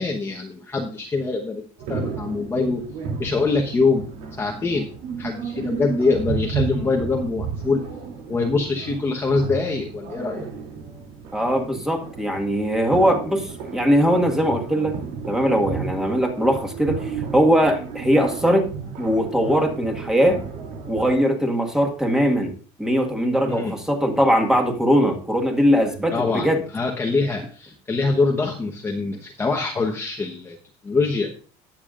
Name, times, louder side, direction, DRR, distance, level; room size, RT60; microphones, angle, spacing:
voice 1, 0.0-1.6 1.9-2.8 3.2-4.1 4.4-4.9 5.2-7.8 8.3-10.5 23.5-23.8 26.1-26.5 26.7-30.6 30.8-31.3, left 3 dB, 20° left, -1 dB, 1.1 m, -24 dB
sound 1, 1.8-21.2, right 5 dB, 85° right, 3.0 m, -32 dB
voice 2, 11.3-14.9 15.3-18.7 19.0-20.4 20.9-22.5 22.8-26.6, equal, 5° right, 3 dB, 1.7 m, -20 dB
19.0 x 7.1 x 2.5 m, 0.39 s
cardioid pair, 150°, 14 cm